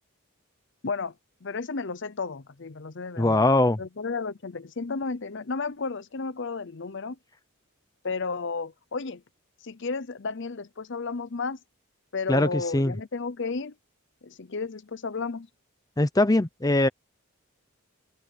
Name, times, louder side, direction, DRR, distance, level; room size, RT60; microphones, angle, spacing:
voice 1, 0.8-1.1 1.4-3.5 3.8-7.2 8.0-9.2 9.6-11.6 12.1-13.7 14.2-15.5, left 4 dB, 55° left, 0.7 m, -33 dB
voice 2, 3.2-3.8 12.3-12.9 16.0-16.9, left 2 dB, 15° left, 0.6 m, -21 dB
open air
head